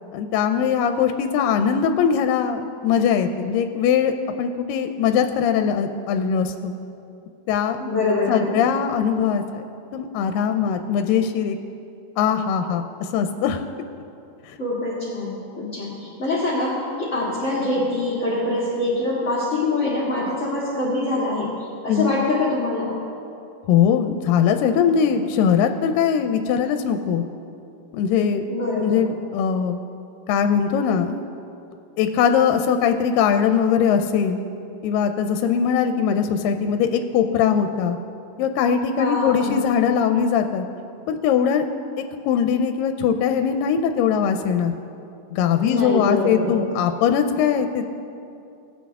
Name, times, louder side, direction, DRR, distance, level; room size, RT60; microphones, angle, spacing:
voice 1, 0.1-6.8 7.5-7.8 8.3-9.6 9.9-11.6 12.2-13.6 14.5-14.6 21.9-22.1 23.7-27.2 27.9-28.4 28.8-29.8 30.3-31.2 32.0-34.4 34.8-38.0 38.4-40.7 41.1-41.7 42.0-44.7 45.3-47.9, left 7 dB, 85° left, 7 dB, 2.2 m, -21 dB
voice 2, 7.8-8.7 14.6-22.9 28.5-29.1 39.0-39.6 45.6-46.5, left 2 dB, 30° left, -8 dB, 1.6 m, -24 dB
19.0 x 8.3 x 3.5 m, 2.6 s
omnidirectional pair, 3.9 m